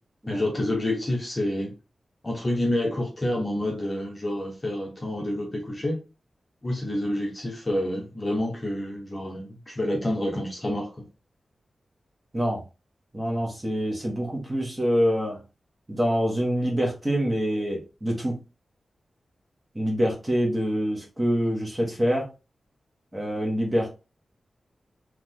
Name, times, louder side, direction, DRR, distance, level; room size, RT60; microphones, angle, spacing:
voice 1, 0.3-1.7 2.2-6.0 6.6-11.0, left 1 dB, 20° left, 1.1 m, -28 dB
voice 2, 13.1-15.4 15.9-18.3 19.7-22.3 23.1-23.9, equal, 15° right, 1.6 m, -25 dB
3.8 x 3.2 x 3.8 m
wide cardioid pair, 165°, 0 cm